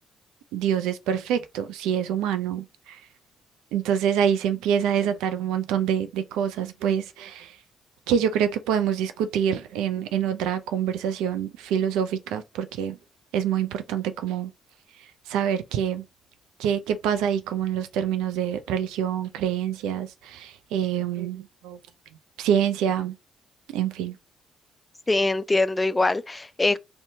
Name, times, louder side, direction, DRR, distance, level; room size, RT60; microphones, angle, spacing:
voice 1, 0.5-3.0 3.7-7.6 8.1-13.0 13.3-14.5 15.3-16.0 16.6-21.8 22.4-23.2 23.7-24.2, right 9 dB, 75° right, 0.3 m, -26 dB
voice 2, 25.1-26.8, left 2 dB, 20° left, 0.3 m, -23 dB
2.7 x 2.1 x 2.7 m
hypercardioid pair, 45°, 0 cm